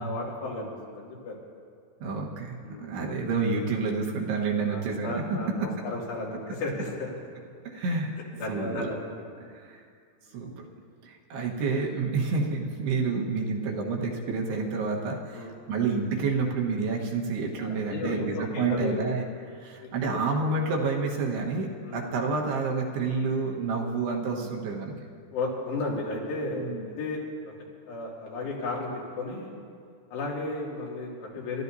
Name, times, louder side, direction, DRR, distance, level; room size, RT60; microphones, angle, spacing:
voice 1, 0.0-1.4 2.6-3.1 4.7-7.1 8.3-9.0 15.3-15.5 17.6-19.0 19.8-20.2 21.8-22.0 25.3-27.6 27.9-28.9 29.2-29.6 30.1-31.6, left 2 dB, 85° left, -5 dB, 4.7 m, -34 dB
voice 2, 2.0-5.2 5.6-5.7 7.7-8.1 8.5-8.9 9.4-9.9 10.3-10.7 11.0-25.0 26.6-26.9, right 4 dB, 75° right, -1 dB, 3.4 m, -29 dB
29.0 x 13.5 x 2.7 m, 2.2 s
omnidirectional pair, 4.8 m